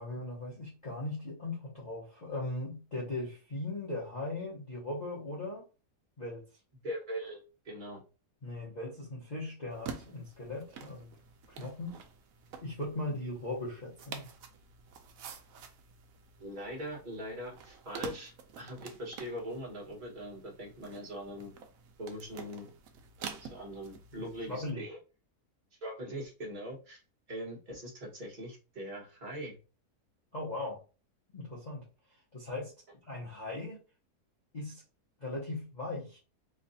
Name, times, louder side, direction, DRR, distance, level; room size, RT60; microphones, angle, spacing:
voice 1, 0.0-5.7 6.2-6.4 8.4-11.1 11.6-12.0 12.6-14.3 24.2-24.9 30.3-30.8 31.3-31.8 32.3-32.7 33.0-33.8 34.5-34.8 35.2-36.2, left 2 dB, 35° left, -6 dB, 0.9 m, -38 dB
voice 2, 6.8-8.0 13.1-13.2 16.4-21.5 22.0-22.7 23.4-25.0 25.8-27.0 27.3-29.6, equal, 35° right, -2 dB, 1.3 m, -41 dB
sound 1, 9.7-24.7, right 6 dB, 70° right, 1.0 m, -48 dB
3.1 x 2.4 x 4.0 m, 0.34 s
omnidirectional pair, 1.6 m